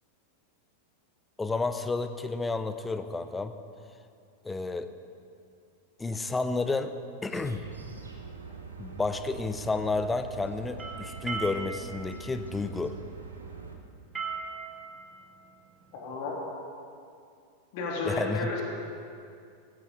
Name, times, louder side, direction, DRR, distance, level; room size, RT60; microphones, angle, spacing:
voice 1, 1.4-3.5 4.4-4.9 6.0-6.9 7.2-7.6 8.8-13.0 18.1-18.5, left 3 dB, 10° left, 10 dB, 0.8 m, -31 dB
sound 1, 7.3-13.8, right 5 dB, 75° right, 1.4 m, -44 dB
sound 2, 10.8-16.3, right 5 dB, 15° right, 2.2 m, -39 dB
voice 2, 15.9-16.4 17.7-18.6, left 3 dB, 45° left, -3 dB, 3.5 m, -32 dB
17.5 x 15.0 x 3.9 m, 2.4 s
figure-of-eight pair, 90°, 0 cm